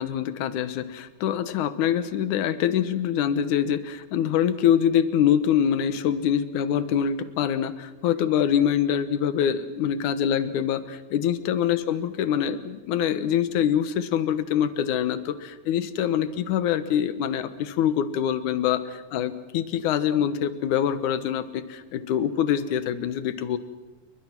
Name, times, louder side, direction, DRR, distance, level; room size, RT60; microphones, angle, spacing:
voice 1, 0.0-23.6, left 9 dB, 70° left, 12 dB, 2.5 m, -24 dB
29.5 x 23.0 x 6.1 m, 1.1 s
omnidirectional pair, 3.7 m